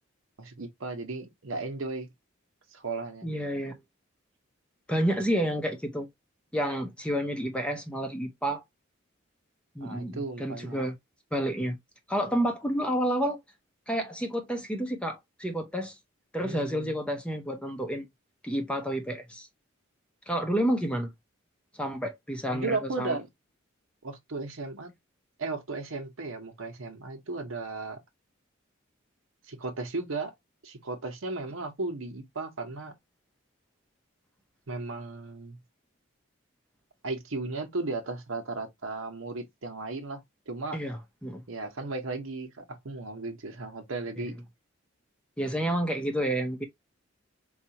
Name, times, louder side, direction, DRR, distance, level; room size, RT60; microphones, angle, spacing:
voice 1, 0.4-2.1 2.7-3.3 9.8-10.9 16.4-17.0 22.5-23.3 24.0-24.9 25.4-28.0 29.5-30.3 30.6-32.9 34.7-35.6 37.0-40.8 41.5-44.4, right 3 dB, 80° right, 0.9 m, -35 dB
voice 2, 3.2-3.8 4.9-6.1 6.5-8.6 9.8-11.0 11.3-11.8 12.1-13.4 13.9-16.0 16.3-18.1 18.4-19.5 20.3-21.1 21.7-23.2 40.7-41.4 44.2-44.3 45.4-46.6, equal, 5° left, 0.6 m, -30 dB
4.3 x 2.4 x 2.8 m
head